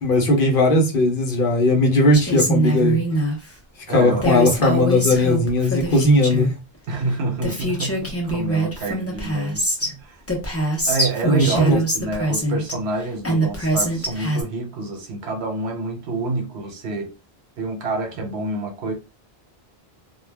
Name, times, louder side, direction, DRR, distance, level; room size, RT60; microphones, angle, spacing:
voice 1, 0.0-3.0 3.9-6.5 11.2-11.8, left 1 dB, 60° left, 0.9 m, -18 dB
Female speech woman speaking, 2.1-3.4 4.2-6.5 7.1-7.2 7.4-9.9 10.3-12.7 13.2-14.4, right 1 dB, 15° left, 0.6 m, -23 dB
voice 2, 3.9-5.3 6.9-10.2 10.9-17.1 17.6-18.9, right 2 dB, 85° right, 1.0 m, -28 dB
2.3 x 2.2 x 3.3 m
omnidirectional pair, 1.1 m